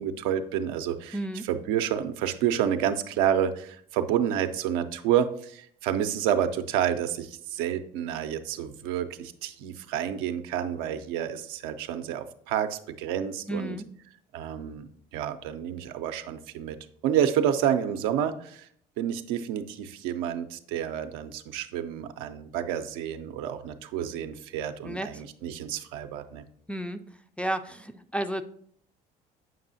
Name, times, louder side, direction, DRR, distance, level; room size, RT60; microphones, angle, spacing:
voice 1, 0.0-1.2 1.5-13.8 14.3-16.8 17.0-18.7 19.0-26.4, right 9 dB, 75° right, 8 dB, 0.5 m, -29 dB
voice 2, 1.1-1.5 13.5-13.9 24.8-25.2 26.7-27.0 27.4-28.4, right 1 dB, 5° left, 6 dB, 0.3 m, -32 dB
7.6 x 5.4 x 2.6 m, 0.65 s
hypercardioid pair, 65°, 21 cm